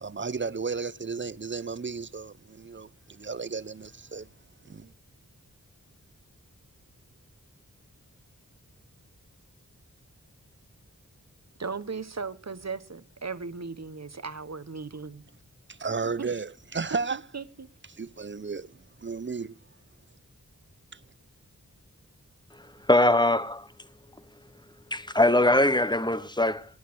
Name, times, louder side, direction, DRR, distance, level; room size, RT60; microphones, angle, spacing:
voice 1, 0.0-4.3 4.6-4.9 15.7-17.2 17.9-19.5 20.9-21.0, right 4 dB, 35° right, 0.8 m, -34 dB
voice 2, 11.6-15.2 16.2-16.3 17.1-17.7, right 4 dB, 50° right, 1.3 m, -37 dB
voice 3, 22.9-23.7 24.9-26.7, left 1 dB, 15° left, 1.1 m, -22 dB
18.5 x 9.4 x 6.3 m
wide cardioid pair, 40°, 33 cm